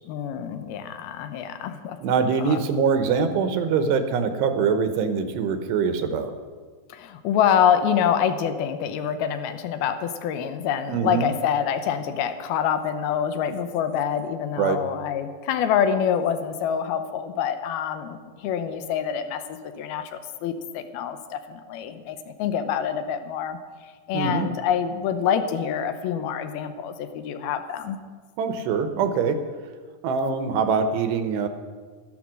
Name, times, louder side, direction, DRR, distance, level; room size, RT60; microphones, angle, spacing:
voice 1, 0.1-2.0 2.4-2.6 6.9-23.6 24.1-28.0, left 8 dB, 75° left, 9 dB, 2.6 m, -26 dB
voice 2, 2.0-6.3 10.9-11.3 14.6-14.8 24.1-24.5 28.4-29.4 30.0-31.5, right 6 dB, 80° right, 8 dB, 3.1 m, -23 dB
13.5 x 12.0 x 6.3 m, 1.5 s
omnidirectional pair, 4.8 m